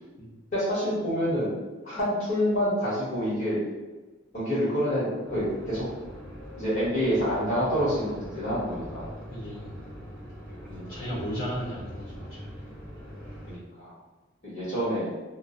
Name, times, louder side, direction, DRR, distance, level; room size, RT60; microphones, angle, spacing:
voice 1, 0.5-1.5 1.8-3.6 4.3-5.8 6.6-9.1 10.7-10.9 13.5-13.9 14.4-15.1, equal, 35° left, -10 dB, 1.3 m, -27 dB
sound 1, 5.3-13.6, equal, 5° left, 0.7 m, -42 dB
voice 2, 9.3-9.7 10.9-12.6, equal, 80° left, -10 dB, 0.7 m, -35 dB
2.4 x 2.1 x 2.4 m, 1.2 s
head